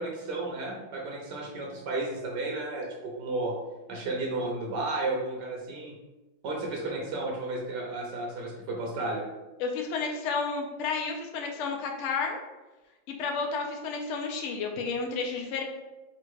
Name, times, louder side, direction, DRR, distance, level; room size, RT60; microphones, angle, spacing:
voice 1, 0.0-3.6 3.9-5.9 6.4-9.2, right 2 dB, 70° right, -1 dB, 1.3 m, -33 dB
voice 2, 9.6-12.4 13.1-15.6, left 4 dB, 80° left, 1 dB, 0.6 m, -31 dB
3.5 x 2.5 x 4.6 m, 1.1 s
omnidirectional pair, 2.1 m